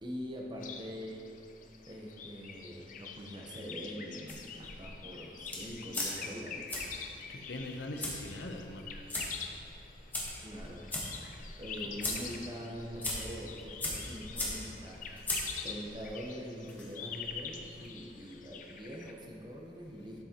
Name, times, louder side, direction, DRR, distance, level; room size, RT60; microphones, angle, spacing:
voice 1, 0.0-1.3 1.9-6.7 10.4-10.9 11.6-15.3 15.6-20.2, equal, 25° right, -1 dB, 0.8 m, -44 dB
sound 1, 0.6-19.1, left 6 dB, 45° left, 0.5 m, -46 dB
sound 2, 4.3-17.9, left 1 dB, 10° left, 1.0 m, -41 dB
voice 2, 7.3-9.0 11.8-12.0, left 2 dB, 85° left, 4 dB, 0.7 m, -42 dB
11.5 x 6.1 x 2.9 m, 2.9 s
head